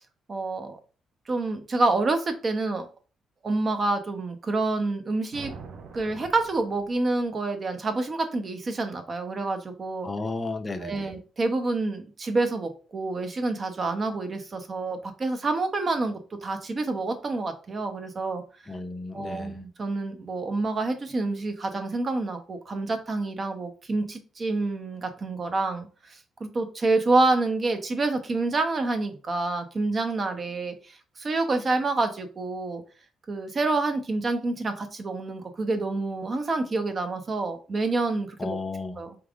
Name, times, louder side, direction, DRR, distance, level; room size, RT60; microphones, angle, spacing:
voice 1, 0.3-0.8 1.3-2.9 3.4-5.5 5.9-10.1 10.8-18.4 19.1-32.8 33.3-38.6 39.0-39.2, right 3 dB, 40° right, 0.8 m, -28 dB
sound 1, 5.3-7.3, right 5 dB, 75° right, 0.7 m, -44 dB
voice 2, 10.0-11.1 18.7-19.6 38.4-39.0, left 3 dB, 25° left, 0.6 m, -33 dB
4.6 x 3.6 x 2.4 m
cardioid pair, 90°, 0 cm